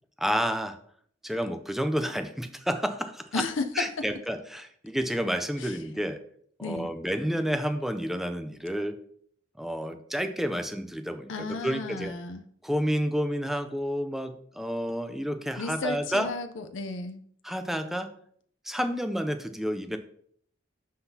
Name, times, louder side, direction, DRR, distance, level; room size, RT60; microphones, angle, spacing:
voice 1, 0.2-0.8 1.2-3.2 3.8-6.2 6.6-9.0 9.6-12.1 12.6-16.3 17.4-18.1 18.6-20.0, equal, ahead, 8 dB, 0.4 m, -30 dB
voice 2, 3.3-3.7 5.6-5.8 6.6-6.9 11.3-12.4 15.6-17.2, left 3 dB, 65° left, 7 dB, 0.5 m, -33 dB
11.5 x 3.9 x 2.8 m, 0.62 s
head